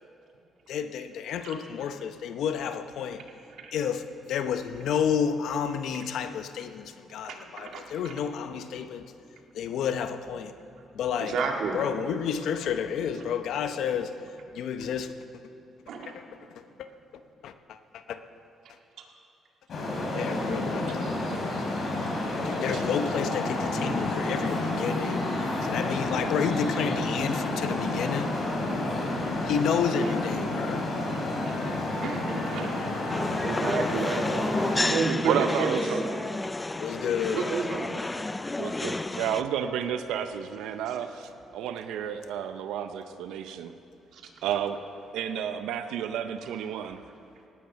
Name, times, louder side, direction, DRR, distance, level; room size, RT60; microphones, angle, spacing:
voice 1, 0.7-3.2 3.7-9.1 9.5-10.5 10.9-11.4 11.7-14.1 14.5-15.4 16.0-16.2 16.5-16.9 17.4-18.2 20.1-21.0 21.6-21.8 22.4-25.3 25.6-28.3 29.4-30.9 36.8-37.5, left 7 dB, 75° left, 0.8 m, -30 dB
voice 2, 7.2-8.1 11.2-11.8 15.9-16.2 19.0-19.1 22.7-22.8 30.0-30.1 31.4-31.5 32.0-32.9 33.4-34.3 34.8-36.3 37.3-38.0 44.1-44.2, right 4 dB, 75° right, 1.9 m, -31 dB
Traffic noise roadway noise, 19.7-34.8, left 2 dB, 60° left, 3.6 m, -30 dB
sound 1, 33.1-39.4, left 2 dB, 15° left, 0.4 m, -31 dB
voice 3, 35.3-35.8 38.6-43.7 44.4-44.8 45.1-47.0, right 9 dB, 90° right, 0.6 m, -31 dB
18.0 x 9.4 x 5.8 m
cardioid pair, 90°, 0 cm